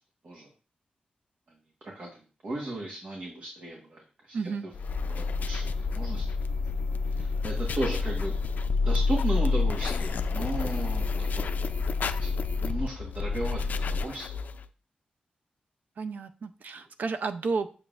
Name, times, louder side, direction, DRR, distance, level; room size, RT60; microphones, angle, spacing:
voice 1, 1.9-4.4 5.1-6.3 7.1-8.3 8.8-11.5 12.2-14.4, right 2 dB, 55° right, -1 dB, 1.5 m, -35 dB
voice 2, 4.3-4.7 16.0-17.7, right 4 dB, 75° right, 10 dB, 0.6 m, -32 dB
sound 1, 4.7-14.6, left 4 dB, 70° left, 0.4 m, -29 dB
7.0 x 6.8 x 2.5 m, 0.37 s
wide cardioid pair, 90°, 3 cm